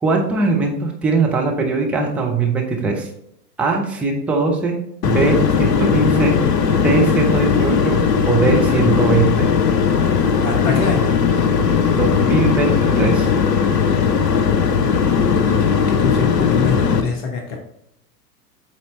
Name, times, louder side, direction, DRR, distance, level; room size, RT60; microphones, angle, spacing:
voice 1, 0.0-3.1 3.6-4.8 5.0-8.0 8.3-9.5 11.9-13.3, right 3 dB, 5° right, 0 dB, 0.5 m, -20 dB
sound 1, 5.0-17.0, left 6 dB, 75° left, 0.8 m, -17 dB
voice 2, 10.4-11.1 15.5-17.6, left 5 dB, 30° left, 3 dB, 1.3 m, -24 dB
8.2 x 4.2 x 3.1 m, 0.74 s
figure-of-eight pair, 100°, 50 cm